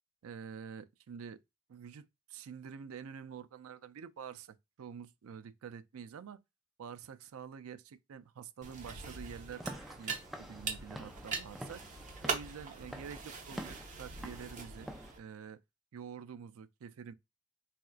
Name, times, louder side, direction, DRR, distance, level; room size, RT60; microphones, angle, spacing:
voice 1, 0.2-1.4 1.7-6.4 6.8-9.6 10.0-11.8 12.2-14.9 15.2-15.6 15.9-17.1, right 7 dB, 85° right, 0.4 m, -47 dB
sound 1, 8.6-15.2, right 4 dB, 35° right, 0.8 m, -42 dB
Walk footsteps / Siren, 9.5-15.1, equal, ahead, 0.3 m, -48 dB
4.1 x 2.4 x 2.3 m
head